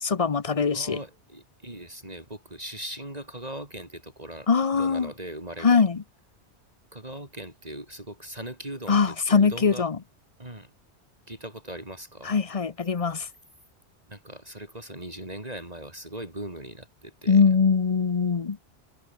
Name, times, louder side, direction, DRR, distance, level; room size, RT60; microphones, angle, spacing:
voice 1, 0.0-1.0 4.5-5.1 5.6-6.0 8.9-10.0 12.2-13.3 17.3-18.6, left 5 dB, 35° left, 0.8 m, -22 dB
voice 2, 0.7-5.8 6.9-9.9 10.4-10.7 11.3-12.3 14.1-17.4, right 1 dB, 35° right, 4.1 m, -39 dB
omnidirectional pair, 1.1 m